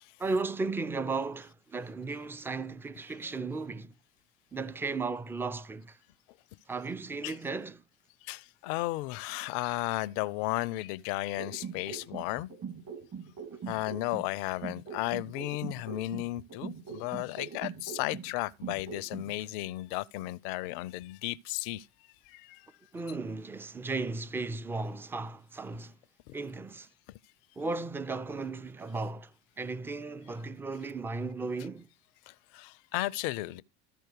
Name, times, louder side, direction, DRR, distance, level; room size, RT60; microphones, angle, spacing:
voice 1, 0.2-3.9 4.5-6.0 6.7-7.8 22.9-25.9 26.3-26.9 27.6-29.3 29.6-31.9, right 3 dB, 5° right, 0.4 m, -35 dB
voice 2, 8.2-12.5 13.7-21.9 22.3-22.6 26.3-26.4 32.3-33.6, left 18 dB, 50° left, 0.5 m, -34 dB
sound 1, 11.4-14.3 14.6-18.3 18.6-19.3, right 6 dB, 40° right, 2.3 m, -41 dB
13.0 x 4.5 x 4.6 m
figure-of-eight pair, 70°, 34 cm